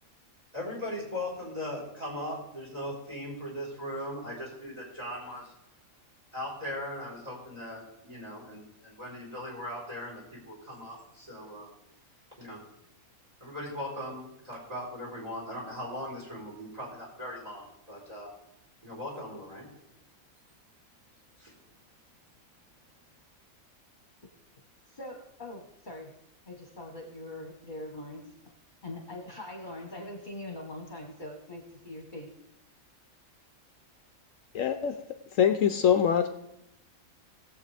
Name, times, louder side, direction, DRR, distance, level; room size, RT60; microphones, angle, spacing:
voice 1, 0.5-5.5 6.3-11.7 12.4-12.6 13.4-18.3 18.8-19.7 21.4-21.5, left 1 dB, 25° right, -4 dB, 4.3 m, -39 dB
voice 2, 24.9-26.1 26.5-28.2 28.8-32.3, left 1 dB, 35° left, 1 dB, 1.5 m, -42 dB
voice 3, 34.5-35.0 35.3-36.3, left 8 dB, 70° left, 8 dB, 1.0 m, -24 dB
19.5 x 7.6 x 3.4 m, 0.82 s
omnidirectional pair, 1.5 m